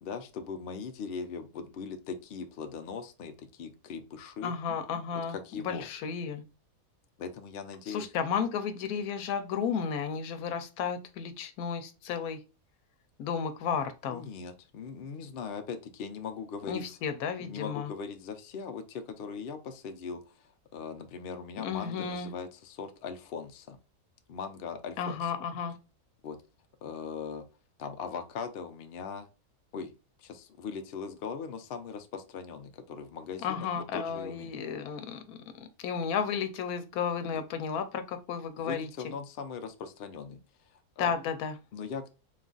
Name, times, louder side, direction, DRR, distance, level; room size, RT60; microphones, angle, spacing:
voice 1, 0.0-4.5 5.3-5.9 7.2-8.1 14.1-16.9 17.4-23.8 24.3-25.3 26.2-26.4 26.8-27.4 27.8-29.3 29.7-29.9 30.2-34.5 37.3-37.4 38.6-40.4 40.7-41.1 41.7-42.1, left 6 dB, 60° left, 0.6 m, -40 dB
voice 2, 4.4-6.4 7.9-12.4 13.2-14.2 16.7-17.9 21.6-22.3 25.0-25.8 33.4-39.1 41.0-41.6, left 6 dB, 85° left, 1.1 m, -33 dB
3.8 x 2.4 x 3.8 m
omnidirectional pair, 1.5 m